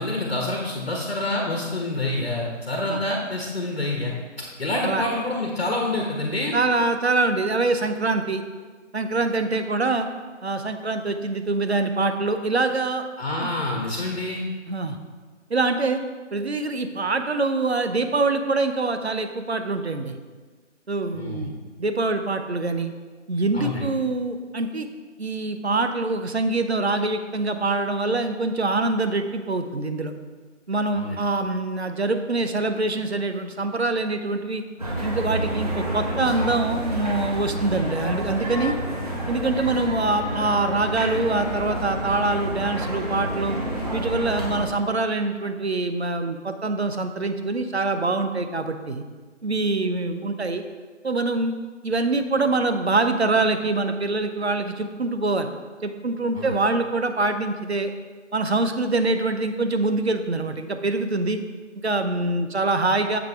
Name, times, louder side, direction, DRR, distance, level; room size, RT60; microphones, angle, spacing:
voice 1, 0.0-4.1 4.6-6.5 13.2-14.4 21.1-21.5 23.5-23.9 31.0-31.2 56.3-56.5, left 2 dB, 55° left, 0 dB, 1.3 m, -27 dB
voice 2, 6.5-8.4 8.9-10.1 10.4-13.0 13.4-13.5 14.7-15.0 15.5-16.0 16.3-20.2 20.9-21.5 21.8-22.9 23.3-24.9 25.2-30.1 30.7-34.6 35.0-38.7 39.3-43.6 43.9-49.0 49.4-50.6 51.0-51.5 51.8-55.5 55.8-57.9 58.3-61.4 61.7-63.2, right 3 dB, 60° right, 8 dB, 0.8 m, -24 dB
sound 1, 34.8-44.6, right 1 dB, 30° right, 1.4 m, -29 dB
7.3 x 6.1 x 4.5 m, 1.4 s
figure-of-eight pair, 160°, 37 cm